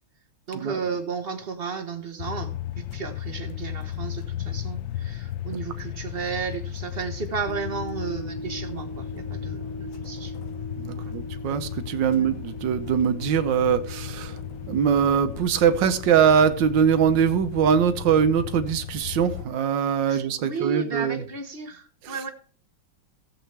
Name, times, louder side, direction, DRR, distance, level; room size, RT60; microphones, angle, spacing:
voice 1, 0.5-10.3 10.9-11.2 12.1-12.3 20.1-22.3, right 5 dB, 35° right, 1.1 m, -33 dB
sound 1, 2.2-19.5, left 11 dB, 80° left, 1.4 m, -35 dB
sound 2, 7.5-16.6, right 1 dB, 35° left, 0.3 m, -40 dB
voice 2, 10.8-14.4 14.7-21.2 22.0-22.2, right 7 dB, 65° right, 1.5 m, -22 dB
15.5 x 7.8 x 3.4 m
omnidirectional pair, 2.2 m